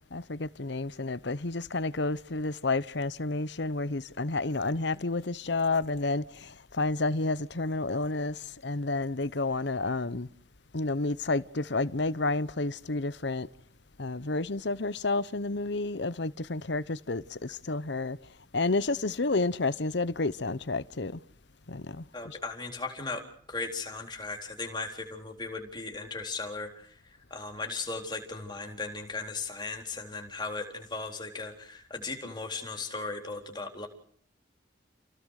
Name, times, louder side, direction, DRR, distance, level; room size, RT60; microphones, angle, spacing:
voice 1, 0.1-6.2 6.7-8.3 8.6-10.3 10.7-13.5 14.0-17.4 17.7-18.2 18.5-21.2 21.7-22.0, left 3 dB, 60° left, 0.9 m, -30 dB
voice 2, 22.1-23.2 23.5-33.9, left 3 dB, 20° left, 3.9 m, -37 dB
29.5 x 17.0 x 6.6 m
head